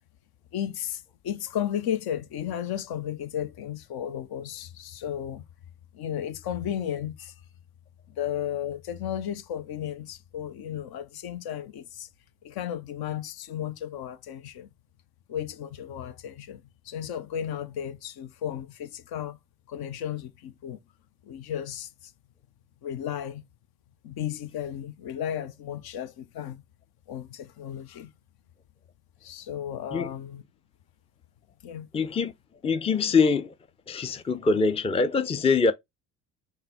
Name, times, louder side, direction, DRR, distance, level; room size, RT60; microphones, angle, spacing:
voice 1, 0.5-5.4 5.9-7.3 8.2-12.1 12.4-14.7 15.3-19.4 19.7-20.8 21.2-22.1 22.8-23.4 24.0-26.6 27.1-28.1 29.2-30.4 31.6-31.9, left 10 dB, 55° left, 0.7 m, -34 dB
voice 2, 31.9-32.3 32.6-33.5 33.9-35.7, left 4 dB, 15° left, 0.5 m, -24 dB
5.5 x 2.1 x 3.6 m
hypercardioid pair, 50°, 45 cm